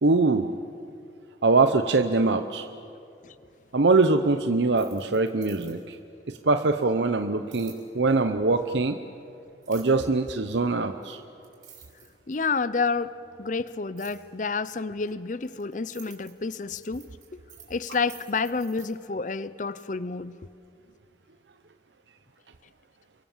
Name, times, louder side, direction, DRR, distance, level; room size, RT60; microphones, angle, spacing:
voice 1, 0.0-0.5 1.4-2.7 3.7-6.0 6.3-9.0 9.7-11.2, right 3 dB, 75° right, 0.8 m, -23 dB
sound 1, 4.6-6.0 7.5-7.8 9.6-10.1 11.0-11.1 11.4-12.5 14.0-14.2 15.1-18.9, right 9 dB, 40° right, 6.5 m, -50 dB
voice 2, 12.3-17.4 17.7-20.4, left 4 dB, 45° left, 0.6 m, -30 dB
29.0 x 23.5 x 7.3 m
head